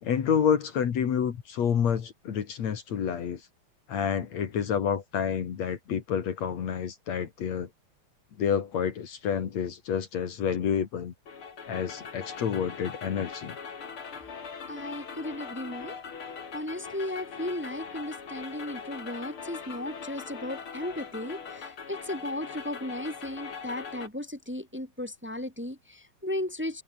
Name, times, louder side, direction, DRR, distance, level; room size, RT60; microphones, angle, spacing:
voice 1, 0.0-3.4 3.9-7.7 8.4-11.1 11.6-13.6, left 7 dB, 60° left, 3.2 m, -29 dB
sound 1, 11.3-24.1, left 6 dB, 45° left, 3.4 m, -41 dB
voice 2, 14.7-16.0 16.5-26.8, left 1 dB, 5° right, 3.0 m, -35 dB
omnidirectional pair, 3.5 m